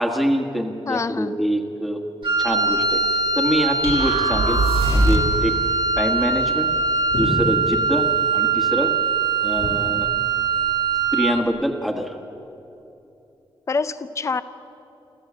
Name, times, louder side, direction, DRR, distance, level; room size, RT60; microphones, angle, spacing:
voice 1, 0.0-2.0 2.4-3.0 3.3-4.6 4.9-5.5 6.0-6.7 7.1-8.1 8.3-8.9 9.4-10.1 11.1-12.1, equal, ahead, 2 dB, 1.4 m, -24 dB
voice 2, 0.9-1.4 13.7-14.4, left 4 dB, 30° left, 13 dB, 0.6 m, -25 dB
Wind instrument woodwind instrument, 2.2-11.5, right 4 dB, 60° right, 2.2 m, -22 dB
sound 1, 3.8-5.4, right 2 dB, 85° right, 3.0 m, -21 dB
sound 2, 4.8-5.6 7.1-7.9 9.6-9.7, left 2 dB, 80° left, 3.7 m, -28 dB
26.0 x 14.5 x 8.5 m, 3.0 s
wide cardioid pair, 160°, 10 cm